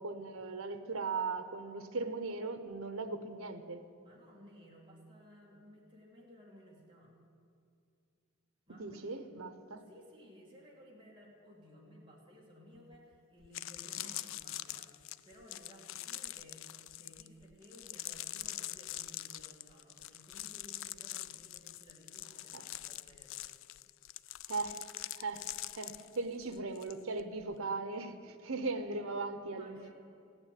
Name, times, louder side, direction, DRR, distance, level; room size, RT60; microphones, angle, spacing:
voice 1, 0.0-3.9 8.8-9.8 14.0-14.2 22.5-22.6 24.5-24.8 25.2-25.5 25.7-29.9, right 3 dB, 80° right, 9 dB, 1.1 m, -38 dB
voice 2, 4.0-7.1 8.7-9.2 9.7-23.6 29.5-29.9, equal, 25° right, -3 dB, 2.5 m, -57 dB
sound 1, 12.9-13.0 13.4-26.9 27.2-27.5, left 15 dB, 65° left, 0.3 m, -44 dB
15.5 x 8.8 x 9.3 m, 2.4 s
head